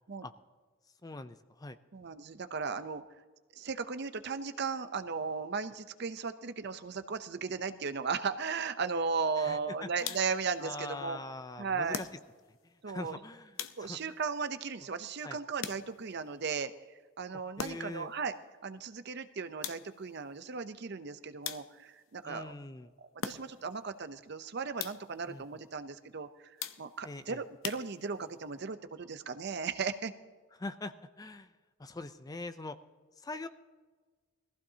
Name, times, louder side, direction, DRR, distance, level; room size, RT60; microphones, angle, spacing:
voice 1, 1.0-1.8 9.4-10.2 10.6-12.1 12.6-14.1 15.2-15.4 17.6-18.1 22.2-22.9 25.3-25.4 27.0-27.4 30.6-31.5 31.8-32.8 33.2-33.5, left 2 dB, 20° left, 11 dB, 0.4 m, -43 dB
voice 2, 1.9-3.0 3.6-11.2 11.6-12.0 12.8-13.2 13.8-16.7 17.2-18.3 18.6-22.5 23.1-26.3 26.8-30.1, right 5 dB, 50° right, 10 dB, 0.6 m, -36 dB
sound 1, 10.0-10.5 11.9-12.6 13.6-14.2 15.6-16.2 17.6-18.1 19.6-20.1 21.4-22.0 23.2-23.8 24.8-25.2 26.6-27.1 27.6-28.4, left 8 dB, 70° left, 0.7 m, -42 dB
21.0 x 15.0 x 2.8 m, 1.4 s
head